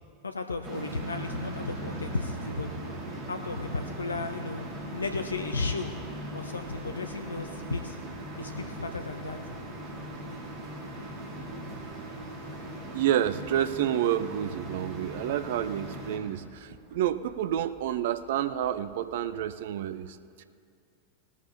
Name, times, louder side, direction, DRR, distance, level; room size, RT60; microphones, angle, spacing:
voice 1, 0.2-2.7 3.3-5.9 6.3-8.0 8.4-9.4, left 3 dB, 75° left, 7 dB, 0.5 m, -34 dB
sound 1, 0.6-16.2, right 1 dB, 30° right, 2.3 m, -39 dB
sound 2, 3.6-19.6, equal, 10° left, 3.6 m, -56 dB
voice 2, 12.9-20.4, right 11 dB, 55° right, 13 dB, 0.4 m, -29 dB
18.5 x 13.0 x 2.9 m, 2.3 s
figure-of-eight pair, 90°, 0 cm